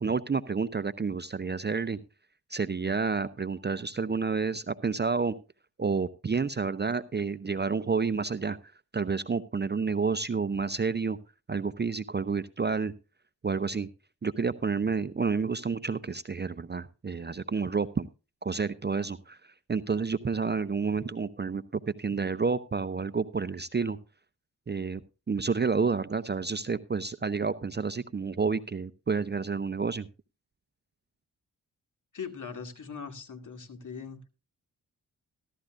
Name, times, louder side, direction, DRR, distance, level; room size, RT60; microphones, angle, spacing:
voice 1, 0.0-2.0 2.5-5.4 5.8-8.6 8.9-11.2 11.5-12.9 13.4-13.9 14.2-18.0 18.4-24.0 24.7-25.0 25.3-30.1, right 5 dB, 25° right, 13 dB, 0.6 m, -29 dB
voice 2, 32.1-34.2, left 6 dB, 45° left, 6 dB, 2.2 m, -40 dB
14.5 x 12.5 x 2.5 m, 0.32 s
supercardioid pair, 45°, 41 cm